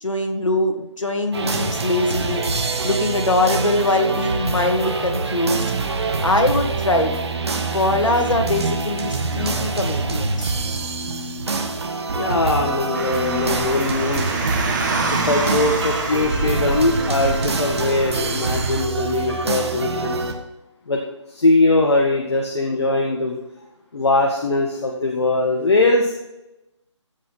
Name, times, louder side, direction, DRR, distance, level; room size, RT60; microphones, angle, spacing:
voice 1, 0.0-2.5 2.8-5.6 6.2-7.1 7.7-10.5, left 2 dB, 85° left, 4 dB, 2.2 m, -22 dB
sound 1, 1.3-20.3, right 3 dB, 55° right, 1.8 m, -25 dB
voice 2, 12.1-14.3 15.3-20.2 20.9-21.0 21.3-23.4 23.9-26.1, left 2 dB, 60° left, 1 dB, 1.8 m, -21 dB
Car, 12.9-18.8, right 3 dB, 40° right, 2.4 m, -26 dB
15.0 x 6.1 x 4.2 m, 0.95 s
figure-of-eight pair, 155°, 16 cm